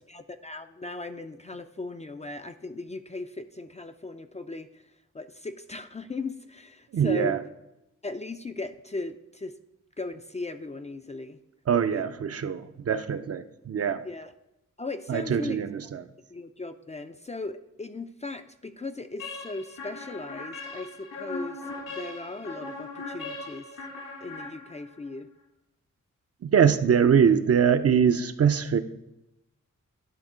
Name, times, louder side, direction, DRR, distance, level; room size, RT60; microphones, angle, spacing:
voice 1, 0.1-4.8 5.1-7.5 8.0-9.5 10.0-11.4 11.9-12.0 14.0-14.3 14.8-15.9 16.3-23.6 24.2-25.3, left 3 dB, 20° left, 9 dB, 0.3 m, -38 dB
voice 2, 6.9-7.4 11.7-14.0 15.1-16.1 26.4-28.8, right 7 dB, 50° right, 10 dB, 0.5 m, -23 dB
sound 1, 19.2-25.1, left 2 dB, 75° left, 2.0 m, -39 dB
10.5 x 3.6 x 4.8 m, 0.89 s
cardioid pair, 80°, 32 cm